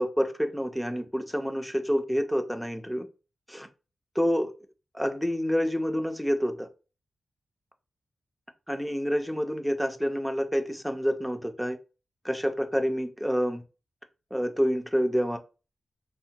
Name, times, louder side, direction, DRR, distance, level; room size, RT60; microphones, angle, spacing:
voice 1, 0.0-3.1 3.5-3.7 4.2-4.5 4.9-6.7 8.7-11.8 12.2-13.6 14.3-15.4, equal, ahead, 0.4 m, -28 dB
3.3 x 2.1 x 2.8 m
wide cardioid pair, 175°, 0 cm